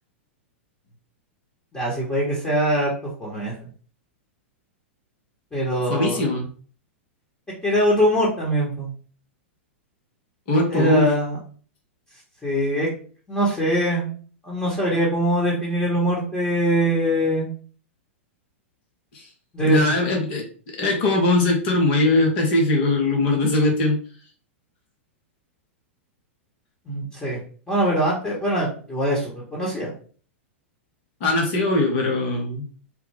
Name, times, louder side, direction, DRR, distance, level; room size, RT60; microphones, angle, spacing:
voice 1, 1.7-2.9 3.2-3.7 5.5-6.3 7.6-8.9 10.7-11.4 12.4-12.9 13.3-14.1 14.4-17.5 19.5-19.9 26.9-27.4 27.7-29.9, right 1 dB, 15° left, -5 dB, 1.2 m, -22 dB
voice 2, 5.9-6.5 10.5-11.1 19.7-20.4 20.8-24.0 31.2-32.7, left 2 dB, 55° left, 1 dB, 1.1 m, -20 dB
3.2 x 2.2 x 3.5 m, 0.43 s
hypercardioid pair, 105°, 7 cm